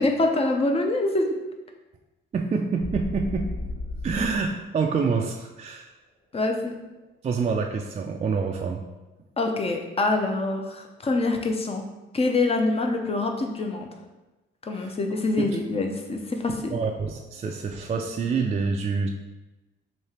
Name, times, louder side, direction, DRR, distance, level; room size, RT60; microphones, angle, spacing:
voice 1, 0.0-1.4 6.3-6.8 9.4-11.8 12.1-13.9 14.6-16.8, left 2 dB, 30° left, 3 dB, 0.6 m, -25 dB
voice 2, 2.3-3.5 4.0-5.9 7.2-8.8 14.7-14.9 15.4-15.5 16.7-19.1, right 5 dB, 35° right, 2 dB, 0.4 m, -27 dB
sound 1, 2.8-4.5, left 2 dB, 85° left, 1.4 m, -33 dB
3.3 x 2.8 x 4.2 m, 1.1 s
cardioid pair, 90°, 20 cm